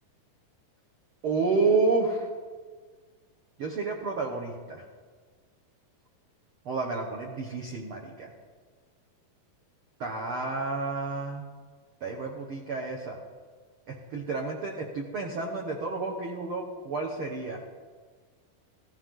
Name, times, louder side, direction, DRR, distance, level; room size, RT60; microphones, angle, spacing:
voice 1, 1.2-2.3 3.6-4.8 6.6-8.3 10.0-11.5 12.0-13.2 13.9-17.6, right 3 dB, 75° right, 0 dB, 1.2 m, -30 dB
16.0 x 14.5 x 3.8 m, 1.5 s
omnidirectional pair, 4.3 m